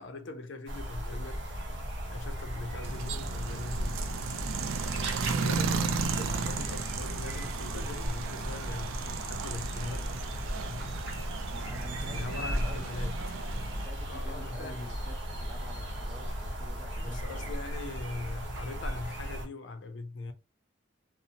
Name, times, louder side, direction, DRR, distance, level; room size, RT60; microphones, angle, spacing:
voice 1, 0.0-1.4 2.1-4.1 5.3-10.9 12.1-13.2 14.1-14.9 17.0-20.3, left 3 dB, 65° left, 0.4 m, -41 dB
sound 1, 0.7-19.5, equal, 65° right, 0.7 m, -36 dB
sound 2, 2.8-13.9, right 5 dB, 90° right, 0.4 m, -35 dB
voice 2, 11.5-13.1 13.4-17.5, equal, 10° right, 0.5 m, -50 dB
2.7 x 2.0 x 2.7 m
head